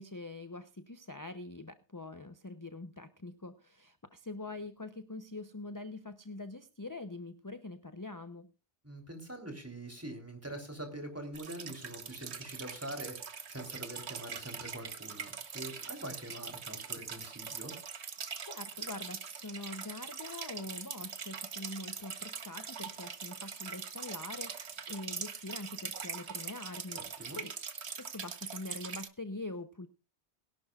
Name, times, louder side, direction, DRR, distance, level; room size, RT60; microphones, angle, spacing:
voice 1, 0.0-8.5 18.4-27.5 28.0-29.9, left 2 dB, 20° left, 10 dB, 0.8 m, -44 dB
voice 2, 8.8-17.7 26.9-27.4, right 1 dB, 10° right, 4 dB, 3.6 m, -44 dB
sound 1, 11.3-29.1, right 6 dB, 70° right, 1.5 m, -42 dB
21.5 x 11.5 x 2.4 m, 0.32 s
omnidirectional pair, 1.2 m